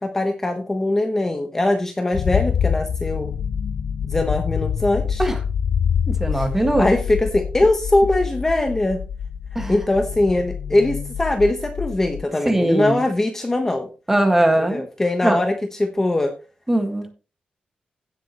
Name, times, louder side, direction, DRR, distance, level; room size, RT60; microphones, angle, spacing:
voice 1, 0.0-3.3 4.1-5.2 6.3-6.4 6.8-9.0 9.7-13.9 14.6-16.3, left 2 dB, 15° left, 5 dB, 1.1 m, -21 dB
sound 1, 2.1-12.2, left 7 dB, 65° left, 0.4 m, -26 dB
voice 2, 6.1-6.9 9.6-9.8 12.5-13.0 14.1-14.8 15.2-15.4 16.7-17.1, right 1 dB, 10° right, 5 dB, 1.8 m, -20 dB
16.5 x 7.6 x 3.0 m, 0.32 s
wide cardioid pair, 180°, 3 cm